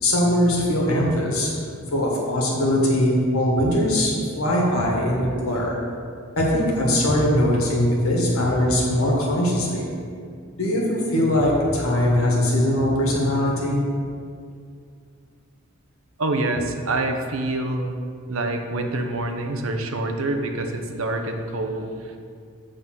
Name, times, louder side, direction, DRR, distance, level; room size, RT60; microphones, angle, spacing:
voice 1, 0.0-1.5 1.9-5.8 6.4-9.9 10.6-13.8, left 1 dB, 90° left, -2 dB, 1.7 m, -21 dB
voice 2, 16.2-18.0 18.3-22.2, right 2 dB, 75° right, 5 dB, 0.7 m, -26 dB
7.8 x 3.7 x 6.2 m, 2.2 s
head